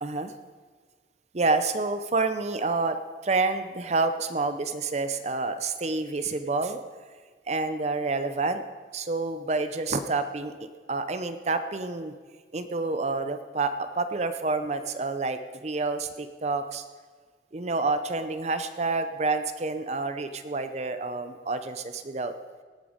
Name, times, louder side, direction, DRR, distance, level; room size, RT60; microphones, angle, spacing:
voice 1, 0.0-0.3 1.3-3.0 3.2-6.8 7.5-8.6 8.9-10.5 10.9-12.1 12.5-16.8 17.5-22.3, right 3 dB, 40° right, 9 dB, 0.6 m, -28 dB
19.0 x 9.2 x 5.1 m, 1.5 s
head